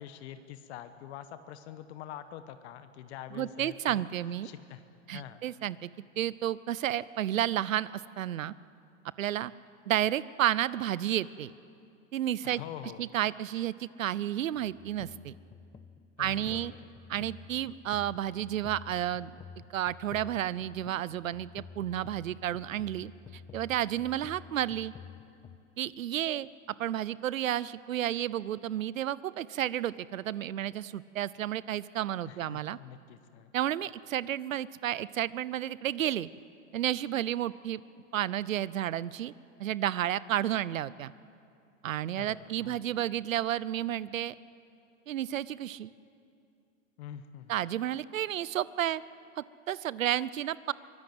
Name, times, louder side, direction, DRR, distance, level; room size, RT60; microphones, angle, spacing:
voice 1, 0.0-4.0 4.4-4.8 5.1-5.4 12.4-13.1 16.2-16.8 17.1-17.3 32.2-33.5 42.2-42.9 47.0-47.5, left 11 dB, 55° left, 11 dB, 1.3 m, -45 dB
voice 2, 3.3-4.5 5.1-5.9 6.2-8.5 9.2-9.5 9.9-11.5 12.1-12.6 13.0-15.3 16.2-16.7 17.1-19.4 19.7-23.1 23.5-24.9 25.8-26.5 26.8-32.8 33.5-36.3 36.7-37.8 38.1-39.3 39.6-41.1 41.8-44.3 45.1-45.9 47.5-49.0 49.4-50.7, right 12 dB, 85° right, 19 dB, 0.7 m, -31 dB
sound 1, 14.5-25.6, left 6 dB, 15° left, 0.6 m, -50 dB
24.0 x 18.0 x 7.9 m, 2.5 s
hypercardioid pair, 120°, 39 cm